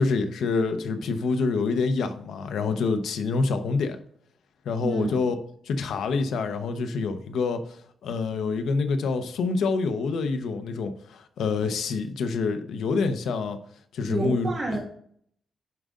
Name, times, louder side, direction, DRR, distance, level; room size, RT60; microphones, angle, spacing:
voice 1, 0.0-4.0 4.6-5.3 5.7-7.6 8.0-13.6 13.9-14.5, left 4 dB, 85° left, 8 dB, 0.9 m, -26 dB
voice 2, 4.8-5.2 14.1-14.8, right 2 dB, 30° right, -4 dB, 1.6 m, -29 dB
10.5 x 3.8 x 3.7 m, 0.63 s
wide cardioid pair, 175°, 0 cm